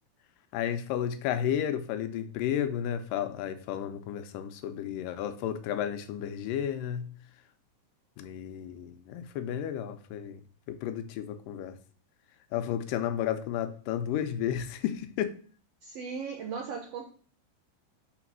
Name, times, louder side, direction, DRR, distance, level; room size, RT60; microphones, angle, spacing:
voice 1, 0.5-7.1 8.2-10.4 10.7-11.8 12.5-15.3, left 10 dB, 85° left, 10 dB, 2.3 m, -32 dB
voice 2, 15.8-17.1, right 5 dB, 75° right, 1 dB, 1.4 m, -37 dB
5.8 x 4.0 x 6.0 m, 0.42 s
omnidirectional pair, 3.8 m